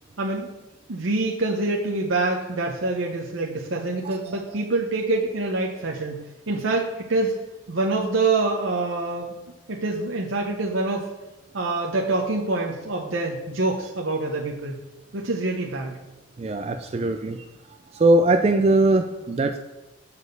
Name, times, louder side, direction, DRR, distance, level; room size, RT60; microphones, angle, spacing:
voice 1, 0.2-0.5 0.9-7.4 7.7-9.3 9.7-11.1 11.5-14.8 15.1-16.0, right 2 dB, 75° right, -1 dB, 0.8 m, -26 dB
voice 2, 16.4-17.4 17.9-19.6, right 2 dB, 30° right, 6 dB, 0.3 m, -20 dB
7.1 x 4.1 x 6.6 m, 1.1 s
head